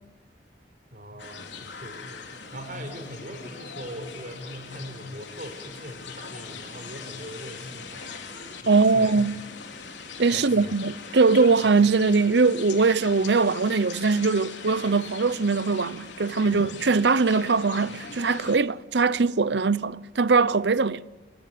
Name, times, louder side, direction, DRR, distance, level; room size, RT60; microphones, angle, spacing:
voice 1, 0.9-8.1 8.6-9.2 10.3-10.7, equal, 50° right, 4.8 m, -40 dB
sound 1, 1.2-18.6, left 5 dB, 90° left, 3.3 m, -41 dB
voice 2, 8.7-9.4 10.2-21.0, right 4 dB, 75° right, 0.7 m, -21 dB
29.0 x 17.0 x 9.2 m
head